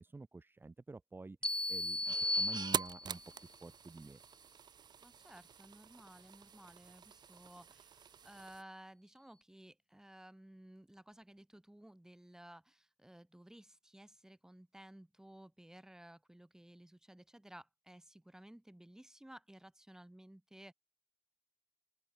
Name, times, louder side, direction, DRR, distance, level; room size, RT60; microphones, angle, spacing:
voice 1, 0.0-3.2 3.6-4.2, right 3 dB, 30° right, 5.7 m, -49 dB
sound 1, 1.4-3.3, left 1 dB, 10° left, 1.0 m, -36 dB
sound 2, 2.0-8.6, right 8 dB, 80° right, 1.7 m, -45 dB
voice 2, 5.0-20.7, right 1 dB, 5° right, 5.4 m, -56 dB
open air
wide cardioid pair, 110°, 7 cm